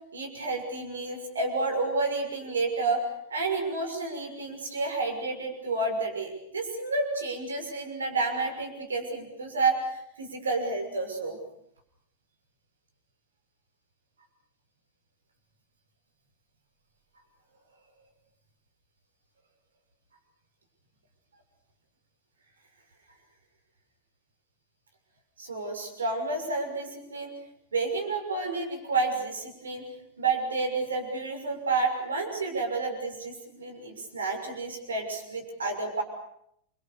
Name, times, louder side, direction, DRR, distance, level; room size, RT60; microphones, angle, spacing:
voice 1, 0.1-3.0 3.3-11.4 25.4-27.3 27.7-29.9 30.2-36.0, right 3 dB, 70° right, 5 dB, 6.3 m, -30 dB
29.5 x 24.5 x 6.8 m, 0.74 s
figure-of-eight pair, 90°, 0 cm